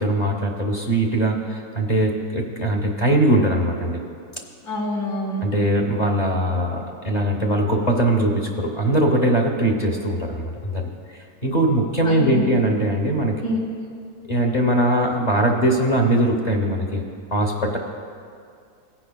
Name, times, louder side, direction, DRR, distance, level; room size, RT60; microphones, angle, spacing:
voice 1, 0.0-4.0 5.4-13.4 14.2-17.0 17.3-17.8, right 1 dB, 35° left, 2 dB, 0.7 m, -21 dB
voice 2, 4.6-5.5 12.0-12.6 13.4-13.6, left 1 dB, 75° left, -6 dB, 3.4 m, -26 dB
17.5 x 10.0 x 2.3 m, 2.3 s
omnidirectional pair, 1.6 m